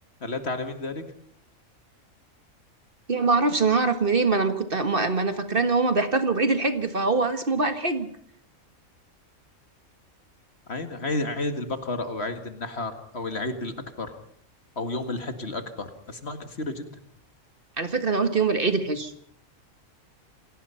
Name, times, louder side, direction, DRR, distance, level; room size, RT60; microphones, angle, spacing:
voice 1, 0.2-1.0 10.7-14.2 14.8-16.9, left 2 dB, 50° left, 7 dB, 2.2 m, -31 dB
voice 2, 3.1-8.1 17.8-19.1, right 3 dB, 45° right, 8 dB, 1.8 m, -23 dB
28.0 x 18.5 x 5.7 m, 0.66 s
omnidirectional pair, 1.4 m